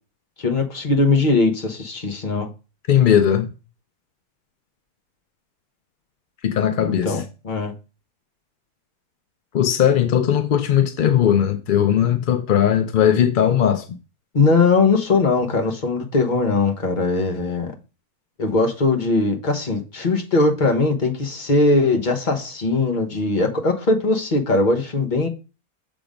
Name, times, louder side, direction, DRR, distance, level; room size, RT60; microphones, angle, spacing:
voice 1, 0.4-2.5 6.8-7.7 14.3-17.7 18.4-25.3, left 3 dB, 35° left, 1.1 m, -20 dB
voice 2, 2.9-3.5 6.4-7.2 9.5-13.8, left 9 dB, 65° left, 0.5 m, -18 dB
6.9 x 3.8 x 5.0 m
omnidirectional pair, 1.6 m